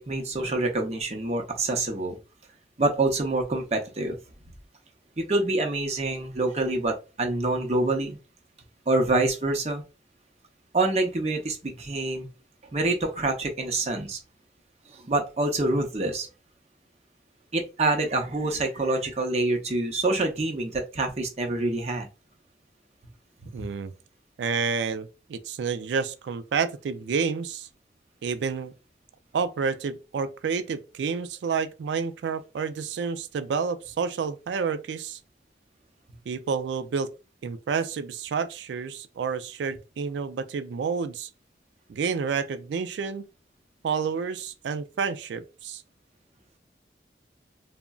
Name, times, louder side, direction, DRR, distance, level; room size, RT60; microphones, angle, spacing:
voice 1, 0.0-2.2 2.8-4.2 5.2-8.2 8.9-9.8 10.7-12.3 12.7-14.2 14.9-16.3 17.5-22.1 23.6-23.7, right 2 dB, 40° right, 0.6 m, -26 dB
voice 2, 23.5-23.9 24.4-27.7 28.2-28.7 29.3-35.2 36.3-37.1 37.4-41.3 41.9-43.2 43.8-45.8, right 5 dB, 90° right, 0.3 m, -29 dB
3.7 x 2.0 x 2.2 m
head